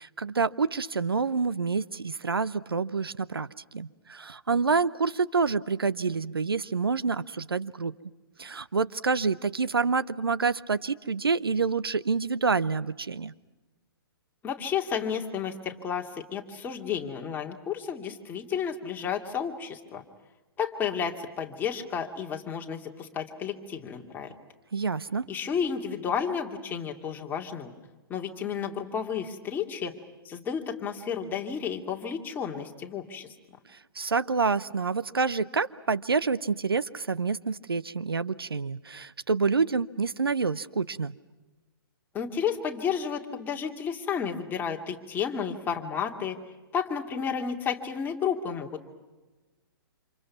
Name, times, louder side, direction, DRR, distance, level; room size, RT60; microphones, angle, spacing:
voice 1, 0.0-7.9 8.4-13.3 24.7-25.3 33.9-41.1, right 4 dB, 75° right, 15 dB, 0.8 m, -27 dB
voice 2, 14.4-20.0 20.6-24.3 25.3-27.7 28.1-29.9 30.2-33.3 42.1-46.4 46.7-48.9, left 7 dB, 15° left, 2 dB, 2.4 m, -32 dB
29.5 x 27.5 x 5.9 m, 1.2 s
figure-of-eight pair, 120°, 12 cm